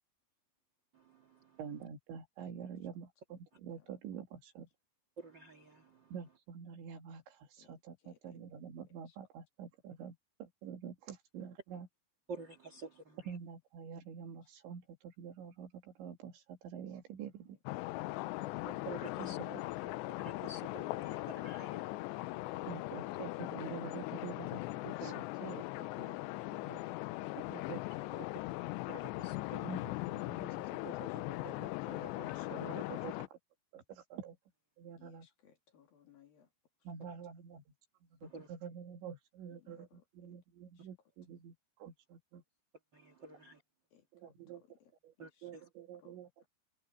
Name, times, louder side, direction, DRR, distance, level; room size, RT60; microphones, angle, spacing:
voice 1, 0.9-1.8 5.2-6.2 12.3-13.4 18.7-19.4 20.2-22.6 25.0-25.1 28.9-29.8 38.2-38.5 42.9-43.6 45.2-45.7, right 3 dB, 50° right, 1.4 m, -50 dB
voice 2, 1.6-4.7 6.1-10.1 10.4-11.9 13.3-17.6 19.4-19.6 22.7-26.2 26.6-26.8 27.5-27.8 28.1-28.3 29.6-33.3 33.7-34.3 34.8-35.3 36.9-37.6 38.2-41.5 41.8-42.4 44.1-44.6 45.4-46.5, right 7 dB, 80° right, 4.7 m, -47 dB
sound 1, 17.7-33.3, left 19 dB, 80° left, 2.8 m, -40 dB
voice 3, 35.0-36.5 39.5-40.0 43.9-44.0 44.5-44.9 46.0-46.2, left 8 dB, 55° left, 4.0 m, -66 dB
omnidirectional pair, 5.2 m